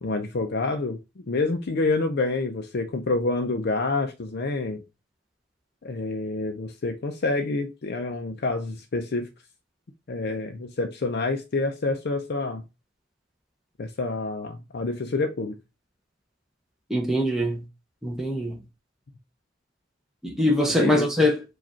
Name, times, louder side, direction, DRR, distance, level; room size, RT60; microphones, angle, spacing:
voice 1, 0.0-4.8 5.8-9.3 10.1-12.6 13.8-15.6 20.7-21.1, left 3 dB, 55° left, 0.5 m, -27 dB
voice 2, 16.9-17.6 18.0-18.5 20.2-21.4, left 1 dB, ahead, 0.7 m, -23 dB
4.9 x 2.4 x 4.3 m
head